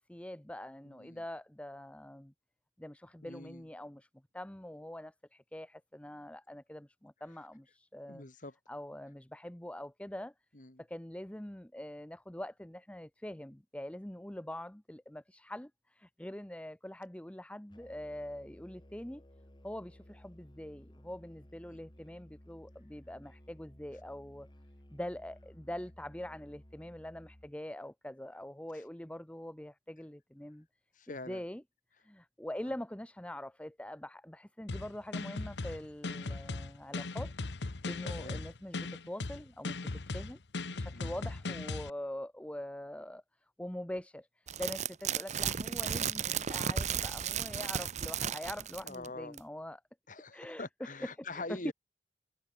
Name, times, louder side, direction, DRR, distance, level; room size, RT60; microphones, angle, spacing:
voice 1, 0.0-2.3 2.8-4.1 4.3-8.2 8.7-10.3 10.8-19.2 19.6-24.5 24.9-30.7 31.1-31.6 32.0-40.4 40.7-43.2 43.6-49.8 50.3-51.7, left 1 dB, 5° left, 0.7 m, -44 dB
voice 2, 0.8-1.2 3.2-3.6 8.1-8.5 10.5-10.8 28.7-28.8 30.9-31.4 38.0-38.4 40.9-41.1 48.8-49.4 50.1-51.7, left 2 dB, 50° left, 3.1 m, -44 dB
Musical instrument, 17.7-27.6, equal, 25° left, 2.5 m, -57 dB
sound 1, 34.7-41.9, left 3 dB, 75° left, 1.0 m, -38 dB
sound 2, 44.5-49.1 49.4-49.5, right 8 dB, 40° right, 0.7 m, -34 dB
head